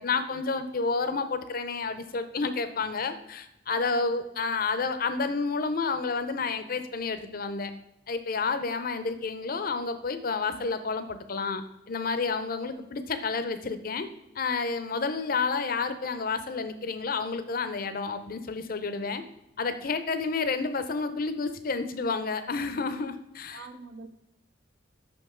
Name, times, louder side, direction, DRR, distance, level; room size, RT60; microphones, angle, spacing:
voice 1, 0.0-7.7 8.1-14.1 14.3-19.2 19.6-23.6, left 4 dB, 50° left, 10 dB, 0.6 m, -30 dB
voice 2, 3.7-4.1 23.5-24.1, right 3 dB, 70° right, 8 dB, 0.7 m, -46 dB
6.1 x 5.3 x 3.7 m, 0.88 s
head